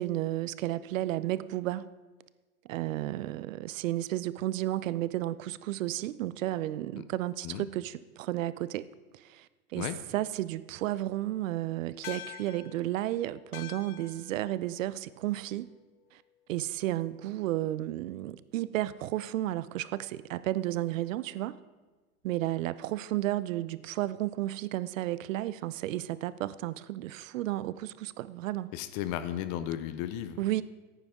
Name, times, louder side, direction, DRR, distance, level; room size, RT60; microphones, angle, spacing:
voice 1, 0.0-1.9 2.7-8.9 9.1-9.5 9.7-9.9 10.1-15.7 16.5-21.6 22.2-28.7 30.4-30.6, right 15 dB, 65° right, 17 dB, 0.6 m, -32 dB
sound 1, 12.0-16.7, left 13 dB, 85° left, 0.7 m, -48 dB
voice 2, 28.7-30.4, left 11 dB, 30° left, 12 dB, 0.5 m, -34 dB
15.5 x 9.4 x 3.6 m, 1.3 s
hypercardioid pair, 135°, 43 cm